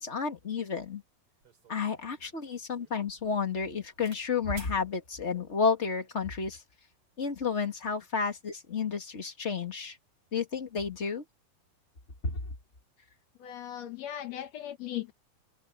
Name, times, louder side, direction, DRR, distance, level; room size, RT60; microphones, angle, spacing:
voice 1, 0.0-1.0 1.7-6.6 7.2-10.0 10.3-11.2 12.2-12.4, left 5 dB, 35° left, 1.1 m, -31 dB
sound 1, 1.4-4.2 4.5-4.8 5.6-6.0, right 5 dB, 35° right, 4.1 m, -54 dB
voice 2, 13.4-15.1, left 11 dB, 75° left, 1.6 m, -38 dB
omnidirectional pair, 4.5 m